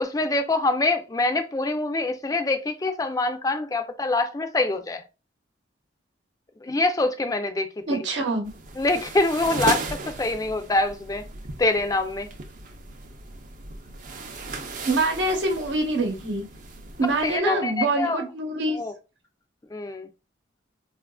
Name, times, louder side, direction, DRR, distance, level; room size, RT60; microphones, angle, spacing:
voice 1, 0.0-5.0 6.6-8.1 8.8-11.2 11.6-12.3 17.2-18.2 18.7-18.9 19.7-20.1, left 2 dB, 20° left, 0.4 m, -25 dB
voice 2, 7.9-8.5 14.8-16.5 17.0-18.8, right 2 dB, 75° right, 0.9 m, -25 dB
sound 1, 8.4-17.4, right 3 dB, 45° right, 0.5 m, -36 dB
3.9 x 2.4 x 2.2 m
head